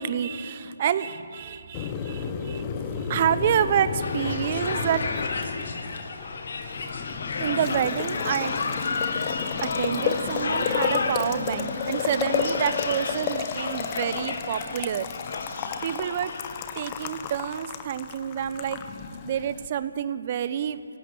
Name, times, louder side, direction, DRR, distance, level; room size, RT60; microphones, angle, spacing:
voice 1, 0.0-2.6 3.0-5.0 7.4-8.5 9.6-15.1 15.8-16.3 16.8-18.8 19.2-20.8, right 9 dB, 35° right, 14 dB, 0.9 m, -28 dB
Boiling, 1.7-19.7, left 7 dB, 25° left, 1.2 m, -32 dB
Mallet percussion, 2.0-6.1, right 1 dB, 5° right, 7.6 m, -43 dB
sound 1, 4.0-17.3, left 4 dB, 60° left, 2.0 m, -32 dB
24.0 x 18.0 x 8.4 m, 2.7 s
figure-of-eight pair, 150°, 0 cm